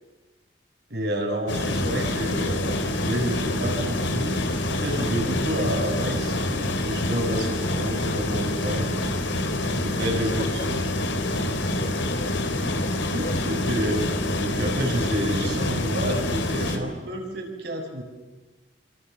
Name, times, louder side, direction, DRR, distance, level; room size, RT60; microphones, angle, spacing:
voice 1, 0.9-4.3 4.7-8.9 9.8-10.8 13.1-18.0, equal, 55° right, 2 dB, 6.5 m, -29 dB
sound 1, 1.5-16.8, left 1 dB, 70° left, 3.3 m, -26 dB
voice 2, 10.0-11.4 11.8-14.0, left 1 dB, 40° left, 5 dB, 4.0 m, -39 dB
29.0 x 26.0 x 7.2 m, 1.2 s
head